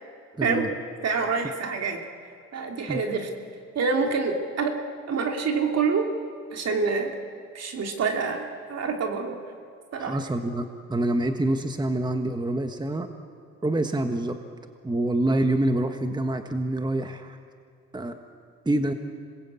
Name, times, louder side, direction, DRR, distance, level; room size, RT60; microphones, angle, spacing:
voice 1, 0.4-0.7 2.9-3.0 10.0-13.1 13.6-14.4 14.8-17.4 17.9-18.2 18.6-18.9, right 1 dB, 15° right, 6 dB, 1.4 m, -26 dB
voice 2, 1.0-2.0 2.5-3.3 3.7-4.8 5.1-6.1 6.5-7.1 7.5-9.4 9.9-10.2, right 5 dB, 55° right, 3 dB, 3.1 m, -26 dB
27.0 x 20.5 x 8.4 m, 2.2 s
cardioid pair, 90°, 30 cm